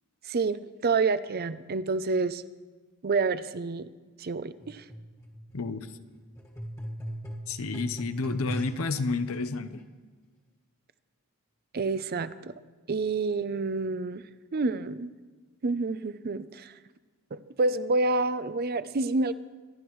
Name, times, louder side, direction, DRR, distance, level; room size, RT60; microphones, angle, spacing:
voice 1, 0.3-2.4 3.0-3.9 4.2-4.8 11.7-12.5 12.9-14.2 14.5-15.1 15.6-16.7 17.3-19.3, right 3 dB, 45° right, 14 dB, 0.5 m, -28 dB
sound 1, 4.6-9.0 9.8-9.9, equal, 15° left, 1.6 m, -40 dB
voice 2, 5.5-6.0 7.5-9.8, left 3 dB, 70° left, 12 dB, 0.8 m, -30 dB
26.0 x 11.5 x 3.1 m, 1.4 s
head